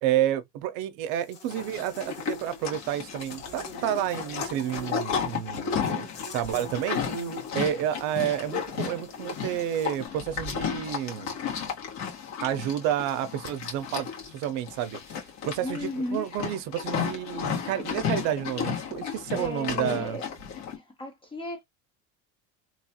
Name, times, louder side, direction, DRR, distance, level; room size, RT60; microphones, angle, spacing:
voice 1, 0.0-7.0 7.5-11.3 12.4-15.0 15.5-20.2, right 11 dB, 60° right, 0.6 m, -30 dB
Buzz, 1.0-10.1, right 1 dB, 55° left, 1.7 m, -45 dB
Livestock farm animals working animals, 1.5-20.8, left 7 dB, 85° left, 1.5 m, -33 dB
voice 2, 15.6-16.3 19.3-20.2 20.7-21.6, left 2 dB, 15° left, 0.3 m, -34 dB
2.9 x 2.3 x 2.8 m
cardioid pair, 170°, 34 cm